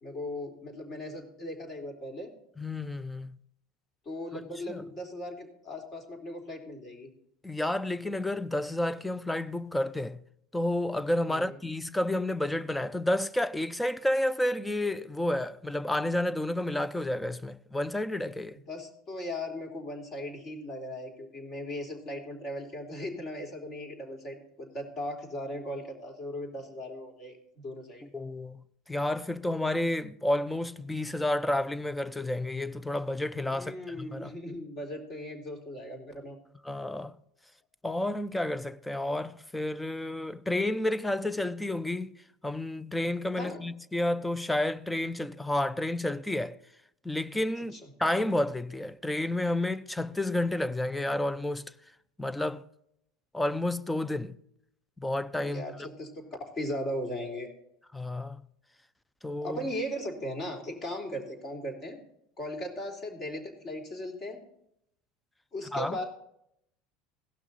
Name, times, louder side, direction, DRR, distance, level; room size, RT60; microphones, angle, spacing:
voice 1, 0.0-2.3 4.0-7.1 11.3-11.6 18.7-28.0 33.5-36.4 43.4-43.6 47.7-47.9 55.4-56.3 56.5-57.5 59.4-62.0 62.4-64.4 65.5-66.0, left 1 dB, 35° left, 3.0 m, -38 dB
voice 2, 2.6-3.4 4.7-4.8 7.4-10.2 10.5-18.6 28.1-34.3 36.7-37.1 37.8-42.2 42.4-46.6 47.0-51.7 52.2-52.6 53.3-54.4 55.0-55.6 57.9-58.4 59.2-59.6 65.7-66.0, left 1 dB, 5° left, 0.5 m, -30 dB
17.0 x 6.1 x 4.0 m
supercardioid pair, 125°, 0 cm